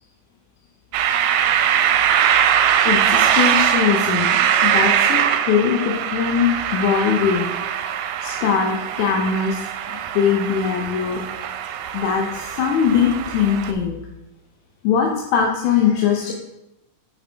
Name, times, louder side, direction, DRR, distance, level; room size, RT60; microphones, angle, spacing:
sound 1, 0.9-13.7, right 9 dB, 85° right, 2.1 m, -21 dB
voice 1, 2.8-7.5 8.2-11.2 11.9-14.0 14.8-16.3, left 7 dB, 75° left, 1 dB, 2.0 m, -21 dB
6.8 x 5.7 x 3.4 m, 0.91 s
omnidirectional pair, 3.9 m